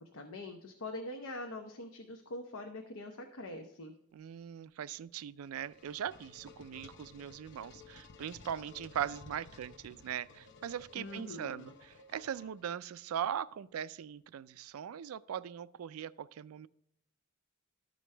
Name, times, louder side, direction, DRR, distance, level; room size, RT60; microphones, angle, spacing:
voice 1, 0.0-3.9 10.9-11.7, left 2 dB, 90° left, 3 dB, 0.8 m, -44 dB
voice 2, 4.1-16.7, right 9 dB, 80° right, 18 dB, 0.4 m, -40 dB
sound 1, 5.2-12.9, left 4 dB, 55° left, 0.7 m, -55 dB
13.0 x 5.1 x 3.3 m, 0.79 s
head